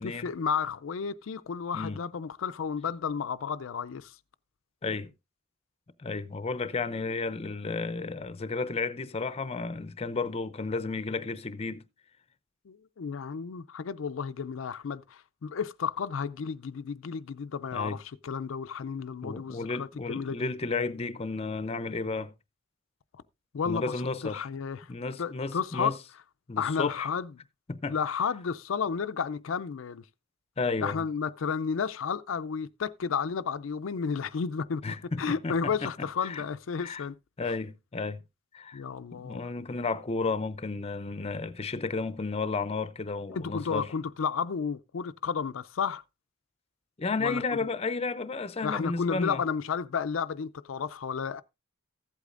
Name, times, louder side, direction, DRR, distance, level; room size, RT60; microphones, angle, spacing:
voice 1, 0.0-4.2 12.7-20.5 23.5-24.9 25.2-25.9 26.6-27.3 27.9-30.0 30.8-37.2 38.7-39.4 43.3-46.0 47.2-47.7 48.6-51.4, left 6 dB, 85° left, 0.5 m, -32 dB
voice 2, 4.8-5.1 6.0-11.8 17.7-18.0 19.2-22.3 23.7-24.5 24.9-25.9 26.5-27.1 27.7-28.0 30.6-31.1 34.8-35.9 36.2-36.4 36.8-37.0 37.4-38.2 38.5-38.8 39.1-43.9 47.0-49.4, left 3 dB, 30° left, 0.6 m, -32 dB
14.5 x 8.3 x 2.5 m
head